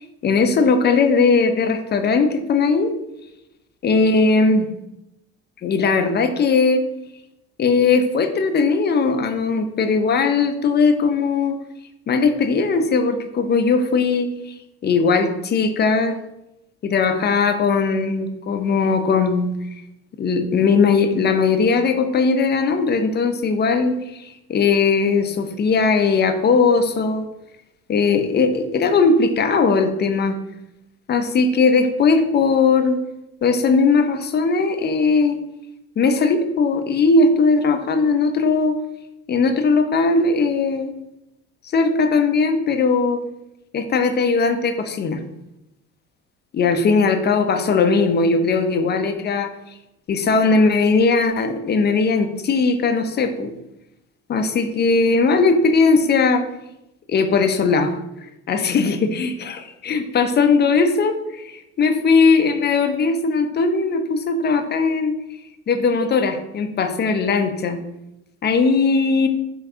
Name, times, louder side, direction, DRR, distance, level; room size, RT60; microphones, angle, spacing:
voice 1, 0.2-2.9 3.8-4.7 5.6-6.8 7.6-11.6 12.1-14.5 14.8-16.2 16.8-19.5 20.2-27.2 27.9-30.4 31.1-33.0 33.4-35.4 36.0-38.8 39.3-40.9 41.7-43.2 43.7-45.2 46.5-49.5 50.1-53.5 54.3-56.4 57.1-58.0 58.5-65.2 65.7-67.8 68.4-69.3, left 4 dB, 25° left, 7 dB, 0.6 m, -19 dB
5.3 x 2.3 x 3.8 m, 0.88 s
hypercardioid pair, 60°, 38 cm